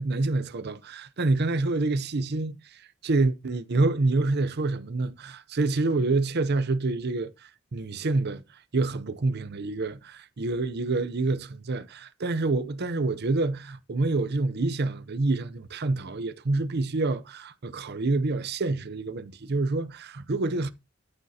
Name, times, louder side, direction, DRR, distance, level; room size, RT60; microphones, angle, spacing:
voice 1, 0.0-20.7, right 3 dB, 55° right, 0.7 m, -27 dB
13.5 x 9.0 x 2.8 m
head